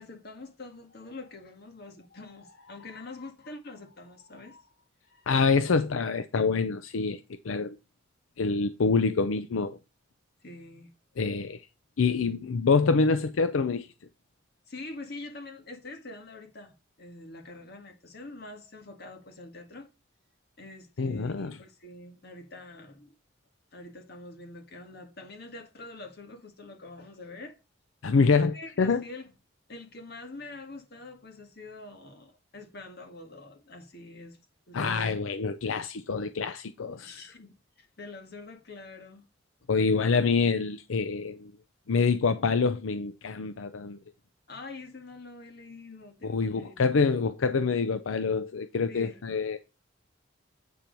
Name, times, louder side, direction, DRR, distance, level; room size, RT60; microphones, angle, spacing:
voice 1, 0.0-4.8 5.0-5.3 10.4-10.9 14.7-19.9 20.6-23.1 23.7-27.6 28.3-29.3 29.7-35.2 36.8-39.3 44.5-46.7 48.9-49.2, left 2 dB, 55° left, 1.7 m, -45 dB
voice 2, 5.3-7.8 8.4-9.8 11.2-11.6 12.0-13.9 21.0-21.6 28.0-29.0 34.7-37.2 39.7-41.5 41.9-44.0 46.2-49.6, left 4 dB, 80° left, 0.5 m, -26 dB
8.6 x 4.5 x 5.2 m
head